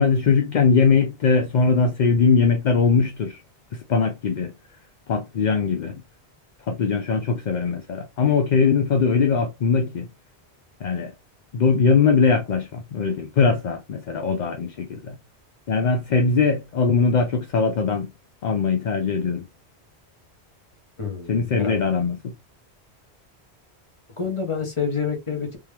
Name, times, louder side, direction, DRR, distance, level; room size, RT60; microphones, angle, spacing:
voice 1, 0.0-3.4 3.7-4.5 5.1-6.0 6.7-10.1 10.8-11.1 11.5-15.2 15.7-18.1 18.4-19.5 21.3-22.3, left 5 dB, 55° left, 0.6 m, -21 dB
voice 2, 21.0-21.8 24.2-25.6, left 5 dB, 30° left, 1.2 m, -28 dB
3.5 x 2.9 x 3.2 m
omnidirectional pair, 1.1 m